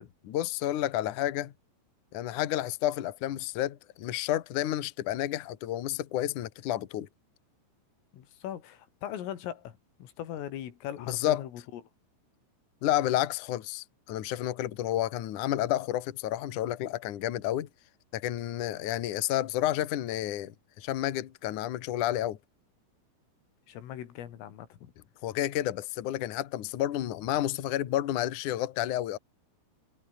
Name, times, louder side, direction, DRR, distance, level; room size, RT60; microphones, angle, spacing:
voice 1, 0.3-1.5 2.1-7.1 11.1-11.4 12.8-17.7 18.1-22.4 25.2-29.2, left 13 dB, 65° left, 2.1 m, -30 dB
voice 2, 8.1-11.8 23.7-24.9, left 11 dB, 85° left, 5.1 m, -40 dB
omnidirectional pair, 5.7 m